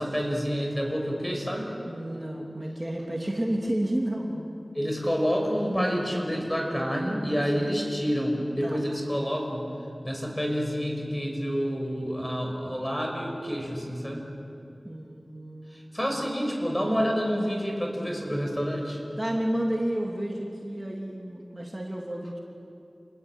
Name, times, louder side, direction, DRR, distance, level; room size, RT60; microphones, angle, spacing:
voice 1, 0.0-1.7 4.7-9.7 10.0-14.3 15.9-19.0, equal, 15° left, 1 dB, 6.2 m, -28 dB
voice 2, 1.9-4.5 7.5-7.8 8.6-8.8 14.8-16.0 19.2-22.4, right 1 dB, 30° right, -1 dB, 3.1 m, -31 dB
29.0 x 19.5 x 9.1 m, 2.7 s
wide cardioid pair, 45°, 0 cm